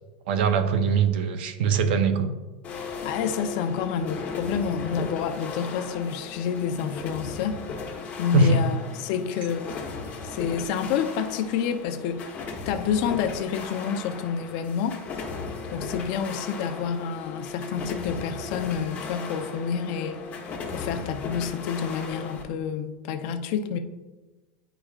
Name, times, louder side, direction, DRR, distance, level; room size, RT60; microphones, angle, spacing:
voice 1, 0.3-2.3 8.3-8.6, right 5 dB, 80° right, 9 dB, 0.7 m, -22 dB
sound 1, 2.6-22.4, left 4 dB, 30° left, 1.2 m, -36 dB
voice 2, 3.0-7.6 8.2-10.0 10.2-15.0 15.7-20.2 20.7-23.8, left 7 dB, 60° left, 8 dB, 0.6 m, -29 dB
9.9 x 5.0 x 2.4 m, 1.2 s
supercardioid pair, 140°, 5 cm